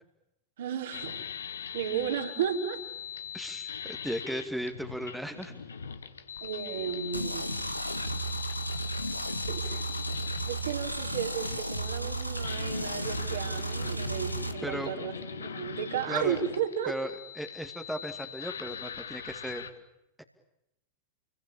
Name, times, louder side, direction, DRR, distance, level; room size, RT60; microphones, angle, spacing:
voice 1, 0.6-1.2 1.7-2.8 6.4-7.5 9.5-9.9 10.5-16.9, right 8 dB, 60° right, 2 dB, 5.1 m, -33 dB
sound 1, 0.9-19.7, left 7 dB, 70° left, 2.0 m, -41 dB
voice 2, 3.3-5.6 14.6-14.9 16.1-16.4 16.9-17.1 17.4-19.6 20.2-20.3, equal, ahead, 6 dB, 2.4 m, -36 dB
sound 2, 7.1-14.5, right 2 dB, 90° left, 2.1 m, -34 dB
29.5 x 22.5 x 8.8 m, 0.87 s
figure-of-eight pair, 90°, 0 cm